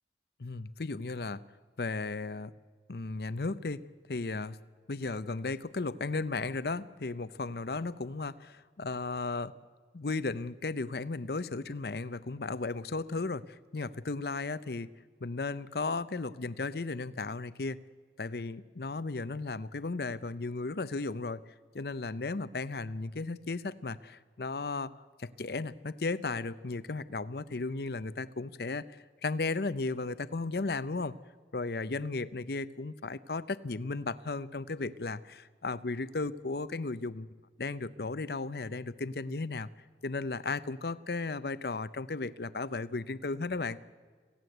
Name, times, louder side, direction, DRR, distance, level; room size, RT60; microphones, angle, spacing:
voice 1, 0.4-1.4 1.8-2.5 2.9-3.8 4.1-4.6 4.9-9.5 9.9-14.9 15.2-17.8 18.2-21.4 21.7-24.9 25.2-31.2 31.5-37.3 37.6-39.7 40.0-43.8, left 3 dB, 60° left, 16 dB, 0.7 m, -35 dB
26.5 x 16.5 x 7.9 m, 1.5 s
head